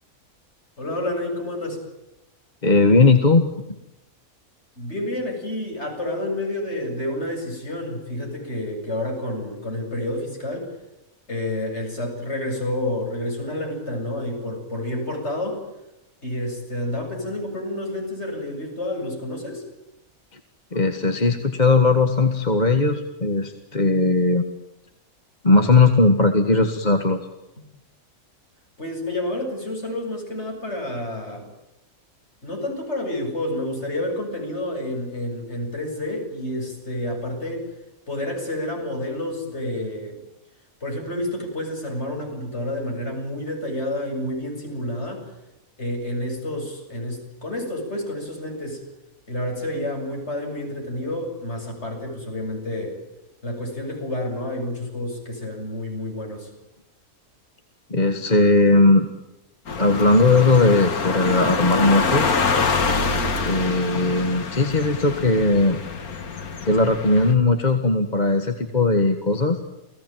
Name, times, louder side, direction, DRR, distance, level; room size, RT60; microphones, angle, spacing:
voice 1, 0.8-1.8 4.8-10.7 11.3-15.6 16.2-19.6 28.8-31.5 32.4-37.7 38.1-40.2 40.8-45.3 45.8-48.8 49.3-53.0 53.4-56.5, left 1 dB, 50° left, 2 dB, 8.1 m, -29 dB
voice 2, 2.6-3.5 20.7-24.4 25.4-27.2 57.9-59.1 59.8-62.3 63.4-65.8 66.7-69.6, left 3 dB, 30° left, 5 dB, 1.8 m, -18 dB
sound 1, 59.7-67.3, left 4 dB, 85° left, 2.2 m, -25 dB
29.5 x 18.5 x 9.2 m, 0.91 s
omnidirectional pair, 1.5 m